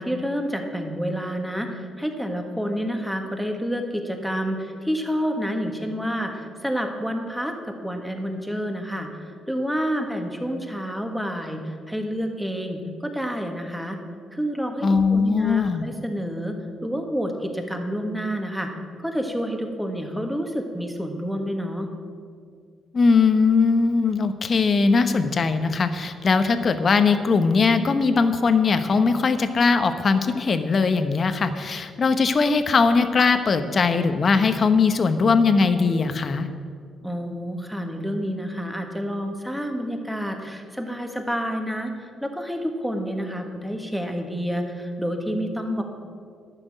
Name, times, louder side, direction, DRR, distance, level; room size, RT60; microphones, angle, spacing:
voice 1, 0.0-14.0 14.3-16.5 16.8-18.7 19.0-21.9 37.0-45.8, equal, ahead, 3 dB, 1.7 m, -29 dB
voice 2, 14.8-15.8 22.9-36.5, left 4 dB, 45° left, 9 dB, 0.9 m, -20 dB
12.0 x 6.1 x 9.1 m, 2.2 s
cardioid pair, 90°, 0 cm